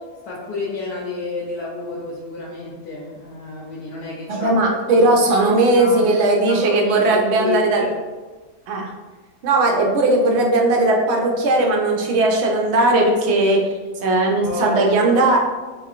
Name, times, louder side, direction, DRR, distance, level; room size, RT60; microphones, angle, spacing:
voice 1, 0.2-4.5 4.9-5.1 5.5-6.0 6.5-7.9 14.4-15.4, left 3 dB, 85° left, -6 dB, 1.2 m, -30 dB
voice 2, 4.3-7.8 8.7-8.9 9.4-13.6 14.0-15.4, right 2 dB, 65° right, 0 dB, 0.7 m, -17 dB
3.9 x 2.4 x 2.4 m, 1.3 s
omnidirectional pair, 1.6 m